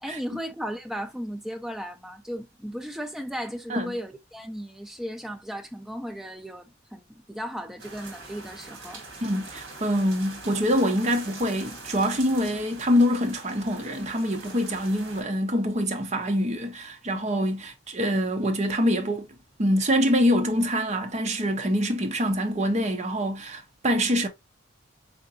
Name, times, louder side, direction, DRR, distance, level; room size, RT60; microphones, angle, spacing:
voice 1, 0.0-9.0, equal, ahead, 0.6 m, -36 dB
sound 1, 7.8-15.2, right 3 dB, 70° right, 1.8 m, -43 dB
voice 2, 9.2-19.3 19.6-24.3, equal, 35° right, 0.8 m, -25 dB
3.9 x 3.5 x 2.5 m
head